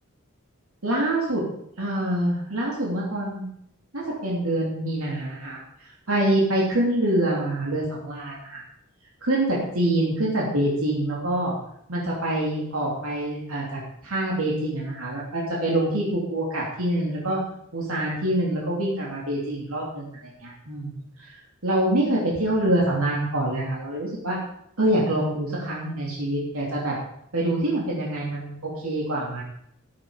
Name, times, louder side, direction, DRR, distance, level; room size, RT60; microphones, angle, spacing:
voice 1, 0.8-1.5 1.8-3.4 3.9-5.6 6.1-8.6 9.2-11.5 11.9-17.4 17.7-20.0 20.4-21.0 21.6-24.4 24.8-26.9 27.3-29.4, right 1 dB, 80° right, -4 dB, 3.0 m, -25 dB
14.0 x 7.7 x 5.2 m, 0.73 s
head